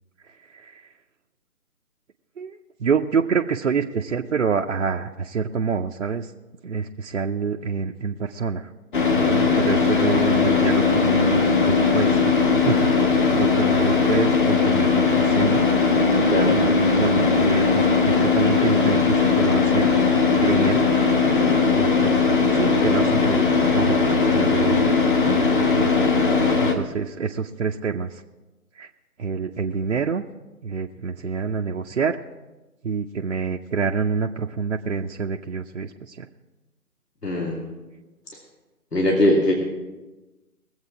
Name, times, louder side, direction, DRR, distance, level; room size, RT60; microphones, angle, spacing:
voice 1, 0.5-0.9 2.4-6.3 6.6-8.7 9.2-12.3 12.6-15.7 16.5-19.9 20.4-20.9 21.7-22.1 22.5-24.9 25.3-28.2 28.8-28.9 29.2-30.2 30.6-32.2 32.8-36.3, right 5 dB, 55° right, 1 dB, 0.6 m, -27 dB
Car / Idling, 8.9-26.7, left 4 dB, 35° left, 1.4 m, -19 dB
voice 2, 37.2-37.6 38.9-39.5, left 1 dB, 85° left, -1 dB, 2.5 m, -20 dB
21.0 x 8.0 x 4.7 m, 1.1 s
figure-of-eight pair, 155°, 46 cm